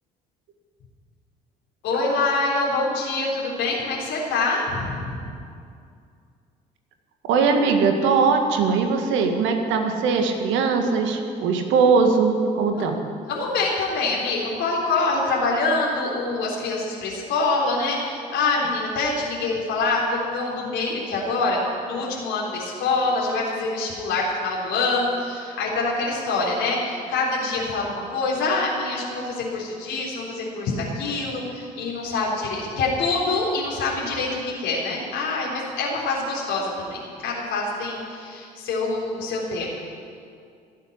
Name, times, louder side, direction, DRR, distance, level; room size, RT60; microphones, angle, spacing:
voice 1, 1.8-5.3 12.8-12.9 13.3-39.7, left 3 dB, 65° left, -4 dB, 3.7 m, -25 dB
voice 2, 7.3-13.0, right 5 dB, 65° right, 4 dB, 1.9 m, -20 dB
17.0 x 8.1 x 9.9 m, 2.4 s
hypercardioid pair, 50°, 21 cm